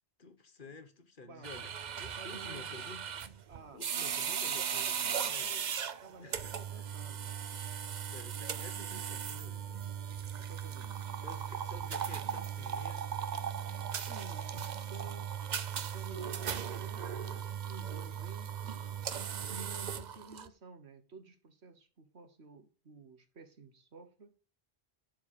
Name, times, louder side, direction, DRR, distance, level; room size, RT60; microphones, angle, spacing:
voice 1, 0.2-3.1 3.7-5.5 6.2-6.9 8.1-10.0 11.2-13.1, left 4 dB, 50° left, 1.3 m, -52 dB
sound 1, 1.4-20.5, right 8 dB, 50° right, 0.7 m, -37 dB
voice 2, 2.2-2.9 3.5-4.2 4.5-5.8 6.0-7.5 8.5-9.3 10.4-11.0 14.1-15.3 15.8-19.0 19.5-24.3, right 3 dB, 80° right, 1.6 m, -53 dB
11.5 x 4.7 x 6.7 m
omnidirectional pair, 1.1 m